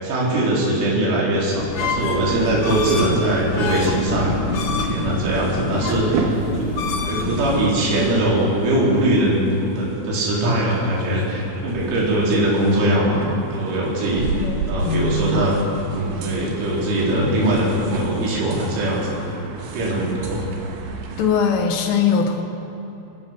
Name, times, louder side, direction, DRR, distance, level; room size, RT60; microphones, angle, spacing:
voice 1, 0.0-4.4 4.6-6.3 6.6-9.4 9.8-14.3 14.7-15.6 15.9-19.2 19.7-20.5, right 1 dB, 90° right, -5 dB, 6.4 m, -21 dB
sound 1, 1.6-7.6, left 3 dB, 60° left, 2.2 m, -26 dB
sound 2, 2.0-21.4, right 4 dB, 65° right, 3.5 m, -33 dB
voice 2, 14.4-15.4 21.2-22.4, left 5 dB, 90° left, 3 dB, 4.3 m, -21 dB
27.0 x 16.0 x 6.4 m, 3.0 s
omnidirectional pair, 5.5 m